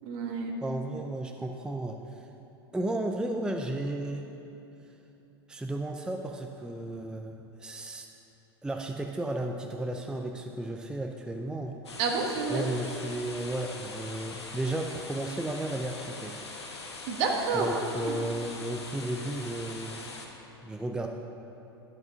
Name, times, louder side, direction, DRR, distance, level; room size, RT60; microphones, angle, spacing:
voice 1, 0.0-0.6 12.0-12.6 17.1-18.1, right 4 dB, 55° right, 2 dB, 1.5 m, -29 dB
voice 2, 0.6-2.3 2.7-4.3 5.5-8.1 8.6-11.7 12.5-16.6 17.5-20.0 20.6-21.1, right 1 dB, 5° right, 3 dB, 0.5 m, -34 dB
sound 1, 11.8-20.3, left 3 dB, 90° left, 1.2 m, -42 dB
12.0 x 5.4 x 6.2 m, 2.9 s
hypercardioid pair, 90°, 14 cm